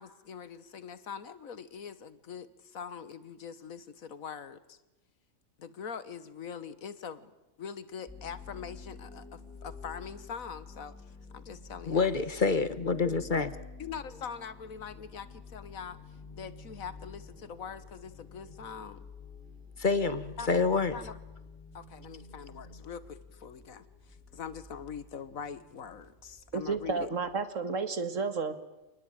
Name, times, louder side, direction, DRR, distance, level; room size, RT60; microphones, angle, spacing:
voice 1, 0.0-4.8 5.6-7.3 7.6-11.0 11.3-12.1 13.8-16.0 16.3-19.1 20.4-20.5 20.9-21.2 21.7-27.1, left 7 dB, 80° left, 15 dB, 1.7 m, -43 dB
sound 1, 8.1-27.4, left 4 dB, ahead, 5.5 m, -50 dB
voice 2, 11.9-13.5 19.8-20.9, left 4 dB, 40° left, 14 dB, 1.2 m, -27 dB
voice 3, 26.5-28.6, right 4 dB, 70° right, 11 dB, 2.0 m, -32 dB
26.5 x 20.0 x 9.0 m, 1.0 s
omnidirectional pair, 1.4 m